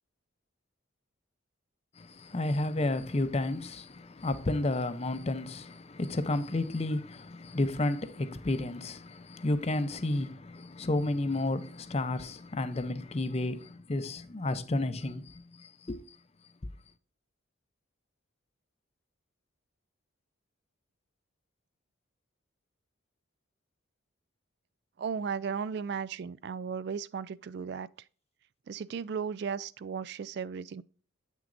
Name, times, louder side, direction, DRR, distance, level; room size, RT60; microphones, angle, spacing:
voice 1, 2.0-16.2, left 2 dB, 30° left, 0.5 m, -32 dB
voice 2, 25.0-27.9 28.7-30.8, right 6 dB, 55° right, 0.3 m, -35 dB
8.1 x 6.2 x 2.5 m
head